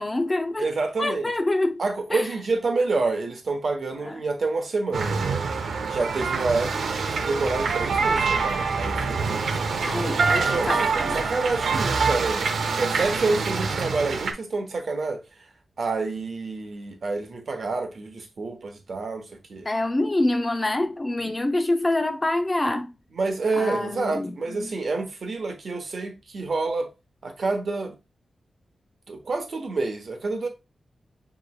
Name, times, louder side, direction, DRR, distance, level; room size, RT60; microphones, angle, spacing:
voice 1, 0.0-0.7 1.0-1.8 2.1-2.2 4.0-4.2 9.8-11.2 19.7-22.9 23.6-24.3 24.6-24.7, left 2 dB, 20° left, 0.4 m, -26 dB
voice 2, 0.6-1.3 1.8-5.5 5.9-9.5 10.4-12.5 12.8-15.2 15.8-19.7 21.2-21.3 23.1-26.9 27.2-28.0 29.1-30.5, right 3 dB, 50° right, 0.9 m, -28 dB
sound 1, 4.9-14.3, right 4 dB, 85° right, 0.6 m, -25 dB
6.4 x 3.0 x 2.3 m
wide cardioid pair, 155°, 0 cm